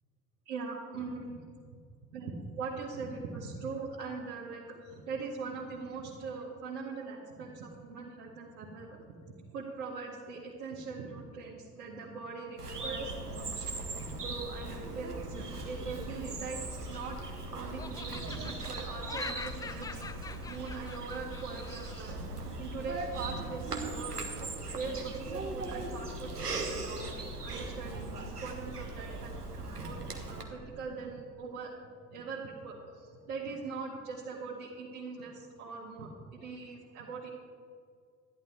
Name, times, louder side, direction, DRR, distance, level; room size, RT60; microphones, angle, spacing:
voice 1, 0.5-1.4 2.1-16.6 16.9-17.2 17.5-20.1 20.5-31.7 32.1-37.3, right 4 dB, 65° right, -6 dB, 2.1 m, -41 dB
Bird vocalization bird call bird song, 12.6-30.4, right 2 dB, 85° right, 1.3 m, -39 dB
Laughter, 16.6-17.4 17.8-22.2, left 4 dB, 10° left, 0.4 m, -45 dB
14.0 x 11.0 x 4.4 m, 2.1 s
figure-of-eight pair, 60°, 45 cm